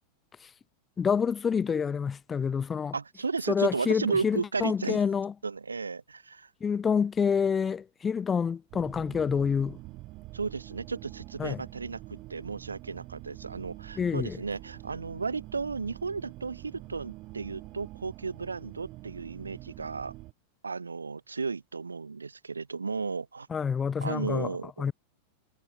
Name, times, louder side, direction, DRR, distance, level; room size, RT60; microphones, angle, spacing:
voice 1, 1.0-2.9 3.5-5.3 6.6-9.8 11.4-11.6 14.0-14.4 23.5-24.5 24.8-24.9, left 6 dB, 20° left, 0.9 m, -27 dB
voice 2, 2.9-5.1 5.4-6.5 10.3-20.1 20.6-23.5 24.0-24.8, right 4 dB, 75° right, 1.7 m, -34 dB
sound 1, 8.7-20.3, right 19 dB, 40° right, 2.8 m, -46 dB
figure-of-eight pair, 90°, 0 cm